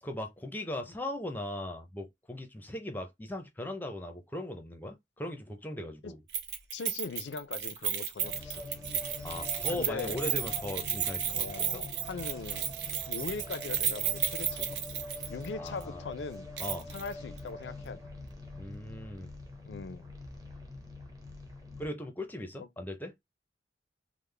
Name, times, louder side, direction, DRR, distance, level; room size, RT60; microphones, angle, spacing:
voice 1, 0.0-6.2 9.2-11.5 11.7-11.8 15.6-16.0 16.6-16.9 18.5-19.3 21.8-23.1, left 1 dB, 10° left, 0.5 m, -38 dB
Keys jangling, 6.3-15.5 15.8-15.9 16.6-17.1 17.4-17.5, right 9 dB, 70° right, 0.6 m, -33 dB
voice 2, 6.7-8.6 9.7-10.2 11.3-12.6 13.1-14.8 15.3-16.5 16.9-18.0 19.7-20.1 22.6-22.7, left 4 dB, 80° left, 0.4 m, -40 dB
sound 1, 8.2-21.9, left 2 dB, 20° right, 0.8 m, -44 dB
3.6 x 2.0 x 3.2 m
head